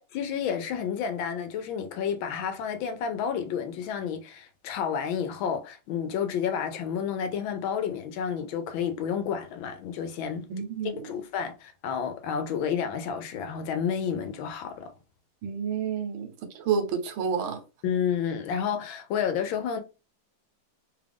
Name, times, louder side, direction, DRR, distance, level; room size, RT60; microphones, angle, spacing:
voice 1, 0.1-10.4 10.8-14.9 17.8-19.8, left 7 dB, 75° left, 1.3 m, -30 dB
voice 2, 10.5-11.1 15.4-17.6, right 6 dB, 75° right, 1.5 m, -30 dB
3.4 x 2.4 x 3.4 m
omnidirectional pair, 2.3 m